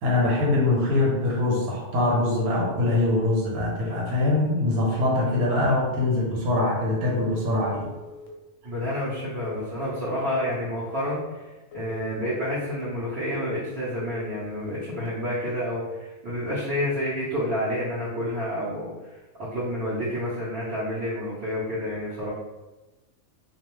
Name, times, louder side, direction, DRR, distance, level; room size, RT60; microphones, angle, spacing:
voice 1, 0.0-7.9, left 2 dB, 80° right, -3 dB, 1.2 m, -23 dB
Telephone, 7.2-8.3 9.4-10.5 11.7-12.8 14.0-15.1, left 4 dB, 65° left, 0.8 m, -43 dB
voice 2, 8.6-11.5 11.7-19.2 19.5-22.3, equal, 50° right, -11 dB, 0.9 m, -29 dB
2.5 x 2.3 x 3.0 m, 1.1 s
omnidirectional pair, 1.6 m